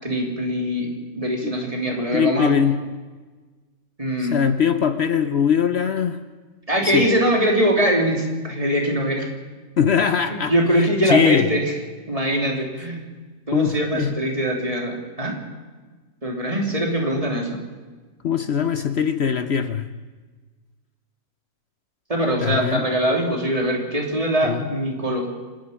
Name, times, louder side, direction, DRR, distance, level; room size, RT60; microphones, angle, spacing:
voice 1, 0.0-2.5 4.0-4.4 6.7-9.3 10.3-11.6 12.1-13.0 13.5-15.4 16.2-17.6 22.1-25.3, equal, 25° right, 0 dB, 3.3 m, -22 dB
voice 2, 2.1-2.8 4.2-6.2 6.8-7.1 9.8-11.5 13.5-14.1 18.2-19.9 22.4-22.8 24.4-24.7, left 7 dB, 55° left, 10 dB, 1.0 m, -21 dB
26.0 x 10.5 x 10.0 m, 1.3 s
omnidirectional pair, 1.3 m